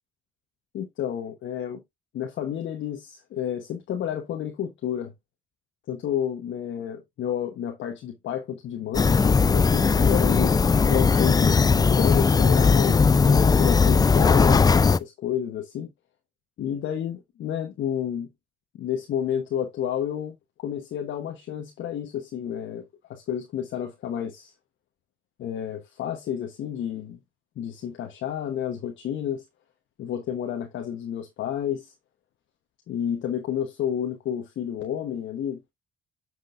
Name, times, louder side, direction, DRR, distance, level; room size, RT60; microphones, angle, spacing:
voice 1, 0.7-1.8 2.1-5.1 5.9-10.6 10.9-15.9 16.6-18.3 18.7-24.5 25.4-27.2 27.6-29.4 30.0-31.9 32.9-35.7, left 9 dB, 70° left, 1.1 m, -30 dB
sound 1, 8.9-15.0, left 5 dB, 20° left, 0.3 m, -18 dB
7.8 x 6.2 x 2.5 m
cardioid pair, 90°, 20 cm